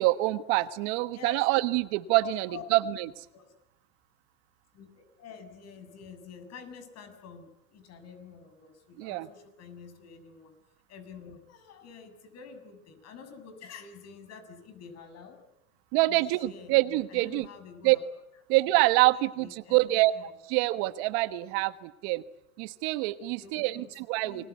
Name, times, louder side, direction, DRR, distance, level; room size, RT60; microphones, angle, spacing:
voice 1, 0.0-3.2 9.0-9.3 15.9-17.5 17.8-18.0 18.5-20.1 20.5-22.2 22.6-24.5, right 19 dB, 65° right, 13 dB, 1.4 m, -26 dB
voice 2, 1.1-1.4 2.2-2.6 3.3-3.5 4.7-10.5 10.9-15.4 16.1-16.8 17.1-18.0 19.1-20.3 23.4-24.5, left 6 dB, 45° left, 9 dB, 7.0 m, -48 dB
29.0 x 22.0 x 8.4 m, 0.86 s
supercardioid pair, 100°, 35 cm